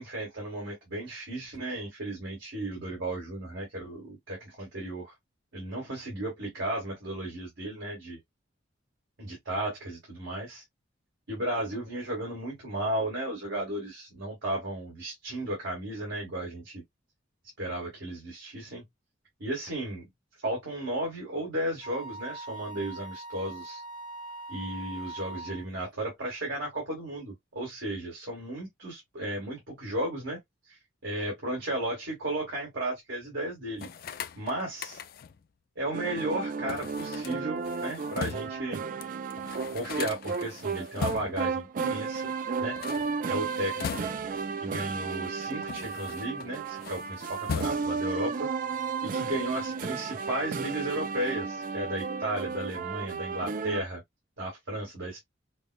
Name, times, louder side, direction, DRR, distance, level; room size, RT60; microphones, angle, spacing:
voice 1, 0.0-5.1 5.5-8.2 9.2-10.6 11.3-16.8 17.6-18.9 19.4-20.0 20.4-23.8 24.5-30.4 30.6-33.9 34.3-35.0 35.7-38.8 39.7-42.3 42.6-42.8 43.3-44.1 44.6-48.5 49.0-54.0 54.4-55.2, right 1 dB, 80° right, 1.7 m, -34 dB
Wind instrument woodwind instrument, 21.8-25.7, right 2 dB, 75° left, 0.8 m, -42 dB
sound 1, 33.8-35.4 36.7-38.6 39.0-39.1 39.3-41.5 42.6-44.5 45.2-46.5 46.8-48.1, left 6 dB, 50° left, 0.3 m, -39 dB
sound 2, 35.9-53.8, right 5 dB, 45° right, 0.3 m, -33 dB
5.2 x 2.1 x 2.2 m
head